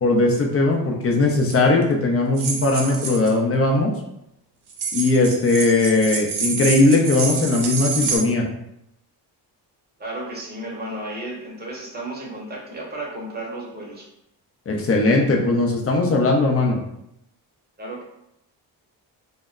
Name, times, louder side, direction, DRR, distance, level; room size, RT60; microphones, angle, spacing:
voice 1, 0.0-3.9 4.9-8.4 14.7-16.8, left 2 dB, 35° left, 1 dB, 0.6 m, -19 dB
sound 1, 1.4-1.5 2.4-3.3 4.7-8.2, right 5 dB, 65° right, 0.7 m, -27 dB
voice 2, 10.0-14.1 17.8-18.0, right 1 dB, 20° right, -3 dB, 0.9 m, -33 dB
2.1 x 2.1 x 3.6 m, 0.81 s
cardioid pair, 105°, 43 cm